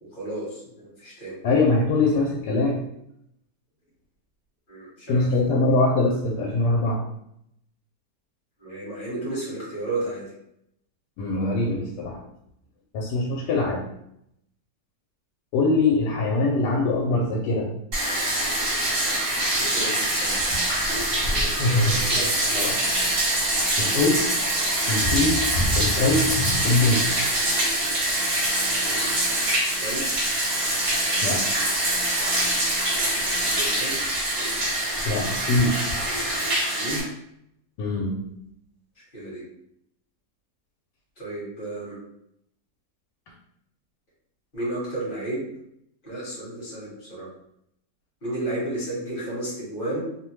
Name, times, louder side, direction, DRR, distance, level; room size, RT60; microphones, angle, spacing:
voice 1, 0.0-1.4 4.7-5.6 8.6-10.3 19.6-20.4 21.3-22.3 29.8-30.0 33.4-34.0 36.6-37.1 39.1-39.4 41.2-42.0 44.5-45.5 46.0-47.3 48.2-50.0, right 1 dB, 35° left, -6 dB, 1.2 m, -32 dB
voice 2, 1.4-2.8 5.1-7.0 11.2-12.2 12.9-13.8 15.5-17.7 21.6-22.0 22.5-22.8 23.8-24.2 24.9-25.4 25.8-26.4 26.6-27.1 31.2-31.5 35.0-35.8 37.8-38.2, left 2 dB, 90° left, -3 dB, 1.2 m, -22 dB
Bathtub (filling or washing), 17.9-37.0, right 1 dB, 45° right, 0.9 m, -24 dB
2.9 x 2.1 x 3.1 m, 0.76 s
omnidirectional pair, 1.8 m